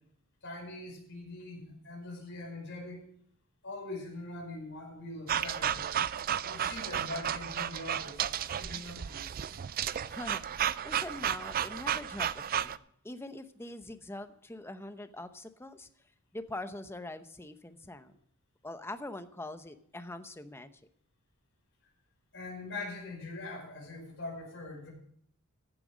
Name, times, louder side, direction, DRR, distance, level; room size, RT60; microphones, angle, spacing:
voice 1, 0.4-3.1 3.6-5.9 6.4-9.3 22.3-24.9, left 2 dB, 55° left, -1 dB, 5.5 m, -42 dB
sound 1, 5.3-12.8, right 9 dB, 40° right, 0.4 m, -33 dB
voice 2, 10.1-12.8 13.0-15.9 16.3-18.1 18.6-20.7, left 1 dB, 10° left, 10 dB, 0.8 m, -43 dB
15.0 x 9.2 x 5.0 m, 0.67 s
head